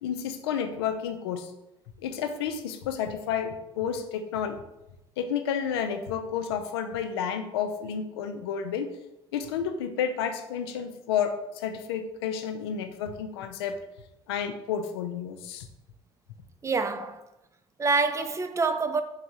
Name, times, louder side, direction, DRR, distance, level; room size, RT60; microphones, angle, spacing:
voice 1, 0.0-1.5 2.0-4.6 5.2-8.9 9.3-13.8 14.3-15.7, left 7 dB, 90° left, 0.4 m, -31 dB
voice 2, 16.6-17.2 17.8-19.0, right 4 dB, 25° right, 0.4 m, -26 dB
3.9 x 3.4 x 2.8 m
hypercardioid pair, 65°, 13 cm